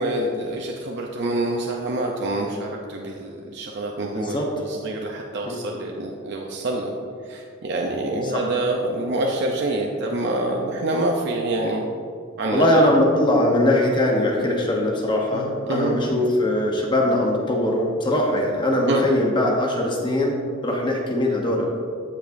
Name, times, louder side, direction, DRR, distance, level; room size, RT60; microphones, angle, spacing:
voice 1, 0.0-6.9 7.2-11.9 12.4-12.9 15.3-16.0 18.9-19.1, right 2 dB, 60° right, 0 dB, 0.6 m, -26 dB
voice 2, 4.1-4.5 5.5-5.6 8.3-8.4 12.5-20.4 20.6-21.7, left 1 dB, 25° left, -1 dB, 0.9 m, -21 dB
14.5 x 5.0 x 2.6 m, 2.3 s
head